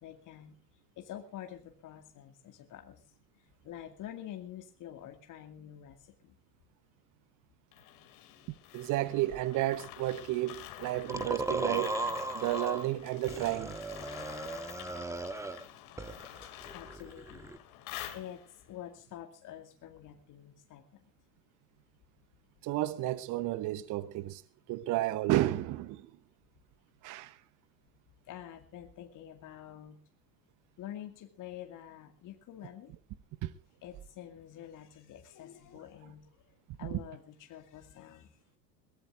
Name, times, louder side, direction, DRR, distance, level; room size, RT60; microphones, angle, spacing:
voice 1, 0.0-0.6 1.0-3.0 3.4-6.3 16.7-17.5 18.1-21.0 28.3-30.0 30.8-32.9 33.8-36.3 36.8-38.4, left 11 dB, 40° left, 2.2 m, -47 dB
sound 1, 7.7-18.7, left 13 dB, 60° left, 2.7 m, -48 dB
voice 2, 8.7-12.0 12.3-13.8 22.6-24.4 24.7-26.1 27.0-27.4 33.4-33.5 36.8-37.0, right 15 dB, 40° right, 1.0 m, -32 dB
sound 2, 11.1-12.9 13.3-15.7 16.0-17.6, right 2 dB, 5° right, 1.3 m, -37 dB
22.5 x 17.5 x 2.6 m
hypercardioid pair, 85°, 49 cm